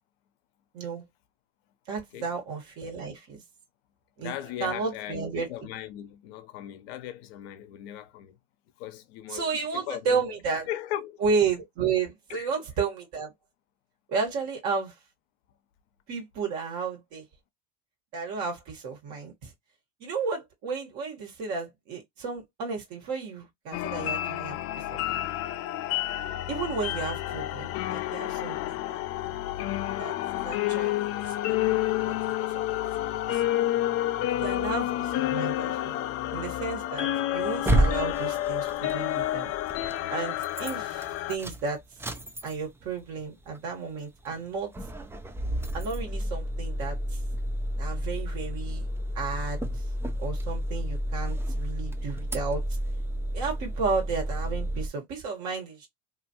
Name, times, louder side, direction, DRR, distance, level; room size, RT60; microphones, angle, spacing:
voice 1, 1.9-3.4 4.2-4.3 4.6-5.5 9.3-10.7 11.2-13.3 14.1-14.9 16.1-17.2 18.1-19.5 20.0-24.6 24.9-25.3 26.5-29.0 30.0-30.1 30.4-31.8 32.0-32.6 33.3-33.7 34.4-36.0 36.3-39.5 40.1-41.8 42.4-44.7 45.7-47.2 47.8-48.9 49.1-49.6 50.2-52.6 53.3-55.9, right 5 dB, 60° right, 1.4 m, -32 dB
voice 2, 4.2-8.4 8.8-10.2 10.7-11.2 12.3-12.5, left 12 dB, 75° left, 0.7 m, -38 dB
sound 1, 23.7-41.4, left 14 dB, 50° left, 0.5 m, -29 dB
sound 2, 37.4-40.0 40.4-40.8 41.0-42.9 43.2-43.3 43.6-43.7 44.3-44.5 44.7-54.9, right 1 dB, 10° right, 0.4 m, -31 dB
2.7 x 2.5 x 2.8 m
hypercardioid pair, 90°, 31 cm